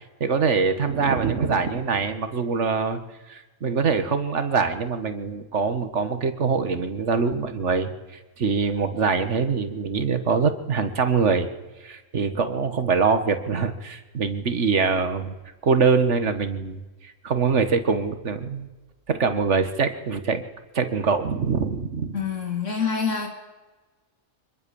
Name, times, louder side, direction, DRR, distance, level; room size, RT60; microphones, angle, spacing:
voice 1, 0.2-3.0 3.3-7.9 8.4-11.5 11.8-15.3 15.6-16.8 17.2-18.7 19.1-20.4 20.7-22.2, right 5 dB, 60° right, 9 dB, 1.9 m, -23 dB
voice 2, 22.1-23.3, left 6 dB, 70° left, 3 dB, 3.1 m, -26 dB
24.5 x 21.5 x 7.1 m, 1.2 s
omnidirectional pair, 1.4 m